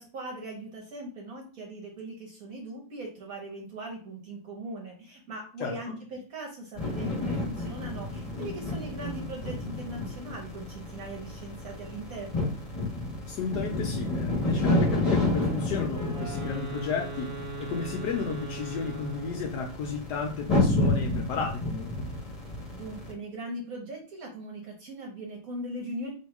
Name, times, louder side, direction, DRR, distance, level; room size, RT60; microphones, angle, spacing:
voice 1, 0.0-12.5 22.7-26.1, right 1 dB, 60° right, 0 dB, 1.1 m, -40 dB
sound 1, 6.8-23.1, left 2 dB, 25° left, 0.9 m, -30 dB
voice 2, 13.3-22.1, left 5 dB, 70° left, 3 dB, 1.0 m, -33 dB
Wind instrument woodwind instrument, 15.9-19.5, right 3 dB, 20° right, 0.9 m, -39 dB
3.0 x 2.8 x 4.5 m, 0.41 s
omnidirectional pair, 2.1 m